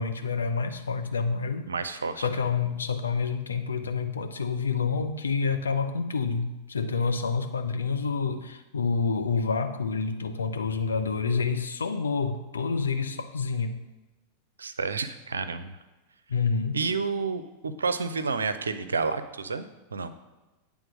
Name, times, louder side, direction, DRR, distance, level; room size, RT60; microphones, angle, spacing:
voice 1, 0.0-1.7 2.2-13.8 16.3-16.9, left 5 dB, 70° left, 7 dB, 0.6 m, -28 dB
voice 2, 1.7-2.4 9.0-9.1 14.6-15.7 16.7-20.1, right 4 dB, 75° right, 11 dB, 0.5 m, -30 dB
9.0 x 3.6 x 6.2 m, 1.1 s
figure-of-eight pair, 90°, 0 cm